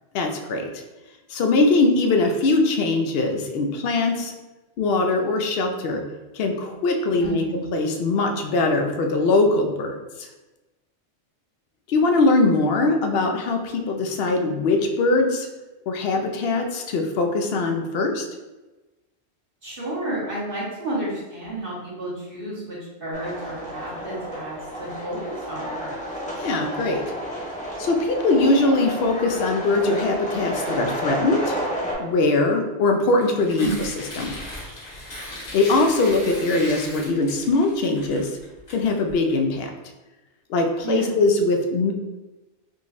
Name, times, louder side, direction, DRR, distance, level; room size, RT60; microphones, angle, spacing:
voice 1, 0.1-0.8 1.3-4.3 4.8-6.0 6.3-7.4 7.7-10.3 11.9-15.5 15.9-18.3 26.4-27.0 27.8-31.6 32.0-33.7 34.2-34.3 35.2-38.3 38.7-39.7 40.5-41.9, left 3 dB, 70° left, 4 dB, 0.7 m, -21 dB
voice 2, 7.2-7.7 19.6-26.0 33.6-33.7 40.8-41.1, right 1 dB, 55° right, -7 dB, 1.3 m, -31 dB
sound 1, 23.1-31.9, equal, 5° left, 0.9 m, -31 dB
Tearing, 33.1-39.4, left 1 dB, 40° left, 1.0 m, -38 dB
3.7 x 3.0 x 2.5 m, 1.1 s
omnidirectional pair, 1.1 m